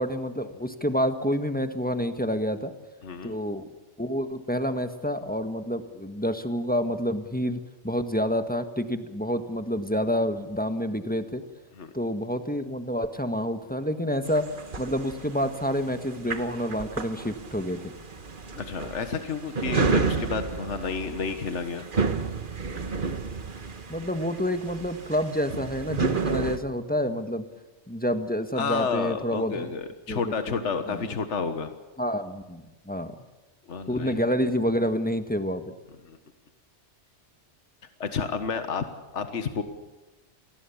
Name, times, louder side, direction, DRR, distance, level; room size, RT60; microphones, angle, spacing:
voice 1, 0.0-2.7 3.2-3.7 4.0-11.4 11.9-14.4 14.8-17.9 23.9-27.4 27.9-29.7 30.1-30.2 30.9-31.1 32.0-33.1 33.9-35.7, equal, 10° left, 7 dB, 1.4 m, -28 dB
voice 2, 3.0-3.4 11.8-11.9 18.5-21.8 28.6-31.7 33.7-34.2 36.1-36.2 38.0-38.9 39.1-39.6, left 5 dB, 75° left, 8 dB, 1.7 m, -30 dB
sound 1, 14.2-26.6, right 4 dB, 45° right, 1.4 m, -31 dB
28.5 x 19.5 x 7.2 m, 1.1 s
omnidirectional pair, 1.2 m